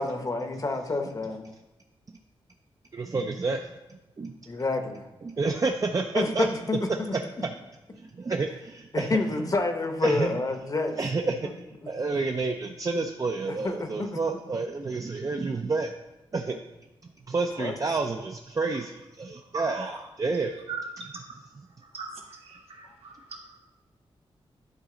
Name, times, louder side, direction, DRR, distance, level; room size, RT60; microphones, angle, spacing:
voice 1, 0.0-1.5 4.5-5.1 6.2-6.8 7.1-7.2 8.9-11.0 13.5-14.2 17.6-17.7, left 2 dB, 35° left, 6 dB, 0.8 m, -28 dB
voice 2, 2.9-3.7 4.2-4.3 5.2-6.5 7.1-7.5 8.0-9.2 10.0-10.4 11.0-11.5 11.9-15.9 16.3-16.6 17.0-20.6, right 3 dB, 35° right, 4 dB, 0.4 m, -29 dB
voice 3, 19.5-19.9 20.7-20.8 21.9-23.4, right 4 dB, 80° right, -1 dB, 1.4 m, -38 dB
10.5 x 4.0 x 3.8 m, 1.0 s
wide cardioid pair, 95°, 10 cm